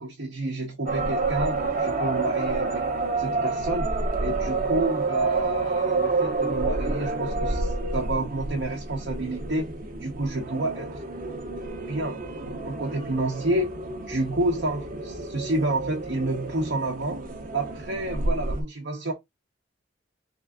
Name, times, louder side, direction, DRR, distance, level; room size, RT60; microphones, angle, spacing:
voice 1, 0.0-2.8 3.2-3.9 4.2-11.0 11.9-13.7 14.0-17.2 17.5-19.1, right 2 dB, 80° right, 0.9 m, -29 dB
sound 1, 0.9-18.6, right 3 dB, 45° right, 0.7 m, -29 dB
3.7 x 2.4 x 3.6 m
head